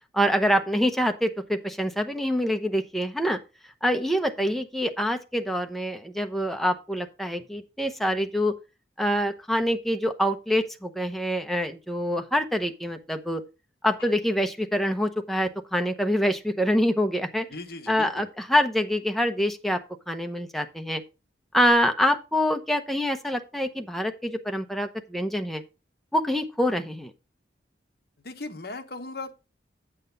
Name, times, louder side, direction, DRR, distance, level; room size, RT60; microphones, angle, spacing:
voice 1, 0.1-3.4 3.8-8.5 9.0-13.4 13.8-17.5 17.9-19.8 20.1-21.0 21.5-25.6 26.1-27.1, equal, ahead, 0.8 m, -25 dB
voice 2, 17.5-18.3 28.2-29.3, left 2 dB, 55° left, 1.1 m, -37 dB
8.1 x 7.8 x 3.8 m
head